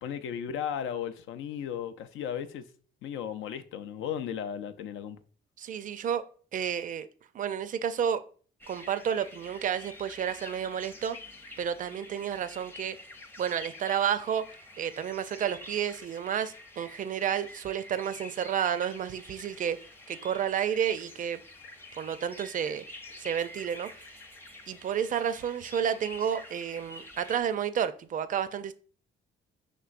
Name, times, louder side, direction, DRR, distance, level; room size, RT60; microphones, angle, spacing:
voice 1, 0.0-2.6 3.0-5.2, left 8 dB, 80° left, 0.5 m, -35 dB
voice 2, 5.6-6.2 6.5-7.1 7.3-8.2 8.7-11.2 11.6-13.0 13.4-14.4 14.8-19.8 20.1-21.4 21.9-22.8 23.2-23.9 24.7-28.7, right 8 dB, 40° right, 0.4 m, -31 dB
sound 1, 8.6-27.4, left 2 dB, 10° left, 0.6 m, -48 dB
5.9 x 3.1 x 2.5 m
cardioid pair, 90°, 20 cm